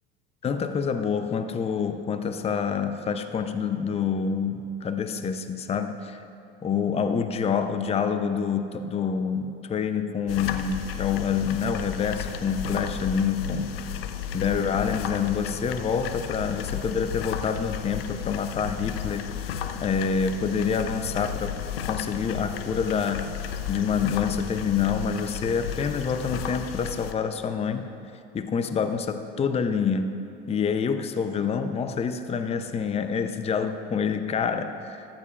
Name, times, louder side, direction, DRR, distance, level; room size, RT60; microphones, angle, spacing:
voice 1, 0.4-6.2 6.6-13.7 14.3-21.6 21.9-23.4 23.7-27.9 28.3-30.2 30.5-35.1, left 6 dB, 20° left, 9 dB, 0.6 m, -27 dB
sound 1, 10.3-27.1, left 9 dB, 80° left, 0.6 m, -33 dB
14.5 x 11.5 x 2.4 m, 2.8 s
hypercardioid pair, 75°, 29 cm